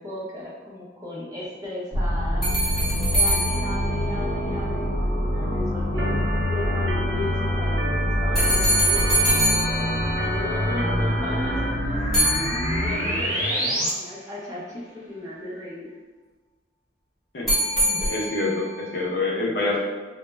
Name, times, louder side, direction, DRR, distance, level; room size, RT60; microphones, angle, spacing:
voice 1, 0.0-2.5 3.1-9.4 10.2-12.0 12.8-15.9, left 1 dB, 20° right, -6 dB, 0.6 m, -36 dB
sound 1, 1.9-13.9, equal, 45° right, 0.8 m, -25 dB
sound 2, 2.4-4.8 8.3-10.8 12.1-13.3 17.5-18.7, right 1 dB, ahead, 0.9 m, -24 dB
Organ, 6.0-11.7, right 1 dB, 70° right, 0.4 m, -31 dB
voice 2, 17.8-19.8, left 2 dB, 60° left, -2 dB, 0.5 m, -26 dB
2.2 x 2.0 x 3.1 m, 1.3 s
head